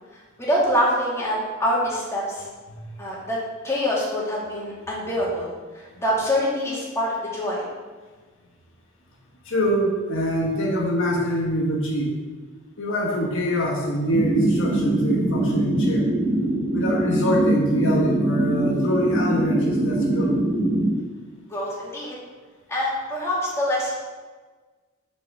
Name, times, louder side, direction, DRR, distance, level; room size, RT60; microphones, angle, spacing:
voice 1, 0.4-2.5 3.0-7.6 21.5-22.1 22.7-23.9, equal, 15° left, -6 dB, 2.7 m, -25 dB
voice 2, 9.4-12.1 12.8-16.1 16.7-20.3, equal, 65° left, -2 dB, 1.5 m, -24 dB
sound 1, 14.1-20.9, right 1 dB, 55° right, 2.7 m, -23 dB
6.9 x 5.9 x 6.6 m, 1.4 s
head